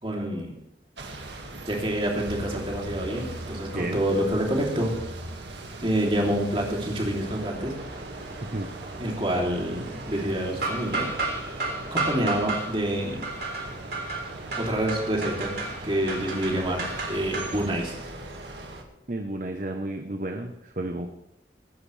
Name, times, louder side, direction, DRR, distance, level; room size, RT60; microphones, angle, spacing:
voice 1, 0.0-0.5 1.7-4.9 5.8-7.7 9.0-11.1 11.5-11.6 11.9-13.3 14.6-15.5 15.8-18.0, right 1 dB, 30° right, -1 dB, 3.1 m, -27 dB
sound 1, 1.0-18.8, right 2 dB, 80° right, 2.0 m, -40 dB
sound 2, 7.2-17.7, right 3 dB, 65° right, 3.7 m, -34 dB
voice 2, 19.1-21.1, right 1 dB, 45° right, 4 dB, 0.9 m, -32 dB
22.5 x 11.0 x 3.3 m, 0.82 s
head